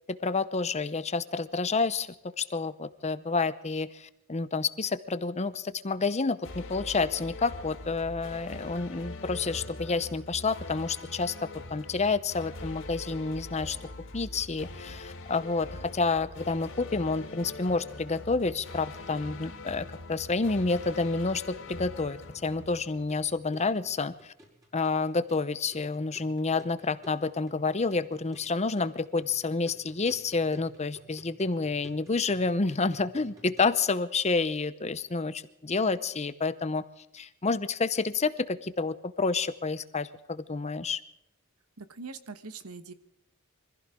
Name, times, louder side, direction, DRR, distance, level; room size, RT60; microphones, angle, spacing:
voice 1, 0.1-2.1 2.4-11.3 11.7-13.8 14.1-15.7 15.9-24.3 24.7-36.8 37.1-41.0, left 4 dB, 30° left, 13 dB, 0.7 m, -29 dB
sound 1, 6.4-23.5, left 2 dB, 60° left, 2.9 m, -43 dB
sound 2, 23.1-33.7, left 1 dB, 15° right, 5.5 m, -55 dB
voice 2, 41.8-42.9, right 4 dB, 75° right, 11 dB, 1.3 m, -42 dB
24.5 x 15.5 x 3.7 m, 0.82 s
head